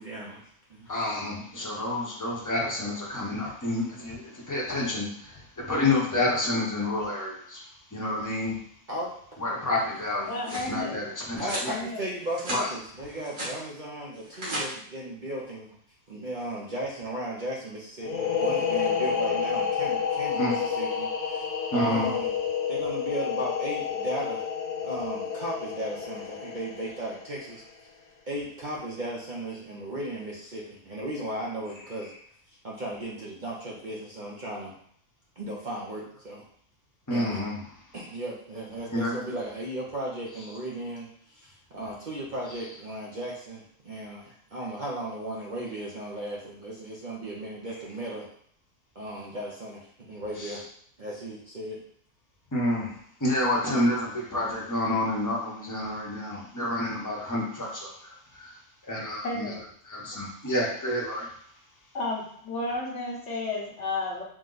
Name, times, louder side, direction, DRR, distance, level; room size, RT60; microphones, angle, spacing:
voice 1, 0.0-0.9 8.9-9.1 11.4-15.8 16.1-22.3 22.7-24.5 24.8-27.6 28.3-32.1 32.6-34.7 35.4-36.4 37.1-37.4 37.9-48.3 48.9-50.6 51.0-51.8, right 1 dB, 45° right, -4 dB, 0.7 m, -36 dB
voice 2, 0.9-7.6 7.9-8.6 9.4-11.7 12.5-12.7 20.3-20.6 21.7-22.1 37.1-37.6 38.9-39.1 50.4-50.6 52.5-58.5 58.9-59.5 59.8-61.3, left 1 dB, 15° left, -4 dB, 0.8 m, -29 dB
sound 1, 10.0-10.7 11.4-11.7 12.2-12.6 13.0-13.6 14.1-14.6, right 1 dB, 65° right, 2.3 m, -35 dB
voice 3, 10.3-11.0 11.7-12.0 59.2-59.6 61.9-64.2, left 2 dB, 60° left, -3 dB, 1.3 m, -32 dB
sound 2, 18.0-27.5, left 7 dB, 85° left, 0.3 m, -29 dB
5.0 x 2.1 x 3.9 m, 0.63 s
omnidirectional pair, 1.4 m